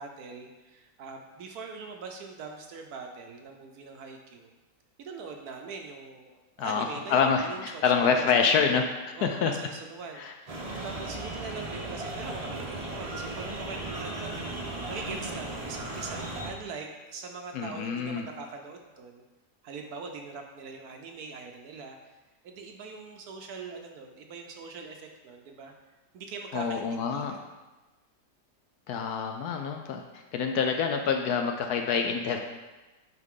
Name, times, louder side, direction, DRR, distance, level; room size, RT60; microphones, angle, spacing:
voice 1, 0.0-4.5 5.0-8.5 9.1-10.6 10.8-14.5 14.9-19.2 19.6-22.0 22.4-25.7 26.1-27.5, right 4 dB, 70° right, 3 dB, 1.0 m, -42 dB
voice 2, 6.6-8.8 9.2-9.5 10.2-10.3 10.7-10.8 17.5-18.2 26.5-27.3 28.9-30.0 30.3-32.4, left 6 dB, 70° left, 4 dB, 1.0 m, -26 dB
sound 1, 10.5-16.5, right 2 dB, 35° right, 0.6 m, -36 dB
9.2 x 3.9 x 3.7 m, 1.1 s
omnidirectional pair, 1.9 m